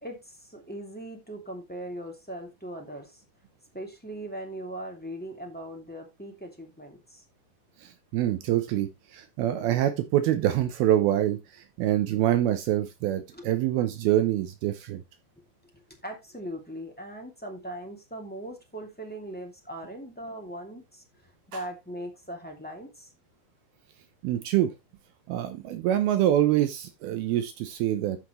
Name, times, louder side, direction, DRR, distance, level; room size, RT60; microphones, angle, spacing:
voice 1, 0.0-3.2 3.7-7.2 13.3-13.4 16.0-23.1, right 1 dB, 5° left, 1.4 m, -40 dB
voice 2, 7.8-15.0 24.2-24.7 25.3-28.2, right 12 dB, 75° right, 2.6 m, -25 dB
13.0 x 5.8 x 3.1 m
omnidirectional pair, 4.7 m